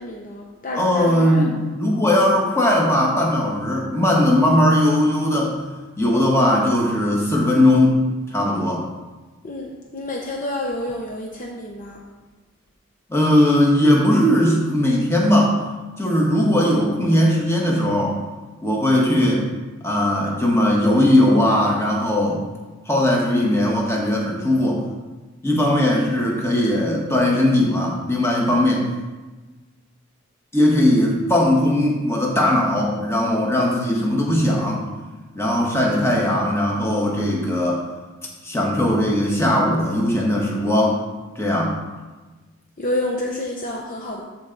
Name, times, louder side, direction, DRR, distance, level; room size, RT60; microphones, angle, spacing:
voice 1, 0.0-1.4 9.4-12.0 42.8-44.2, left 1 dB, 40° left, -1 dB, 0.8 m, -29 dB
voice 2, 0.7-5.6 6.0-8.0 8.3-8.8 13.1-15.6 16.0-18.2 18.6-19.4 19.8-22.4 22.8-24.8 25.4-28.9 30.5-34.8 35.4-37.8 38.4-41.0 41.3-41.8, left 1 dB, 10° left, -2 dB, 1.4 m, -19 dB
13.5 x 4.6 x 4.0 m, 1.2 s
head